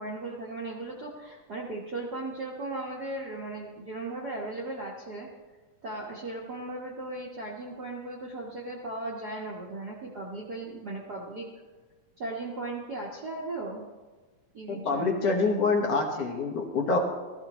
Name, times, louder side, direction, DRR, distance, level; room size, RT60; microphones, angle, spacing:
voice 1, 0.0-5.3 5.8-11.5 12.2-13.8 14.5-15.3, right 2 dB, 50° right, -4 dB, 1.2 m, -37 dB
voice 2, 14.7-17.0, left 3 dB, 60° left, 2 dB, 2.0 m, -26 dB
16.5 x 14.0 x 3.0 m, 1.3 s
omnidirectional pair, 3.6 m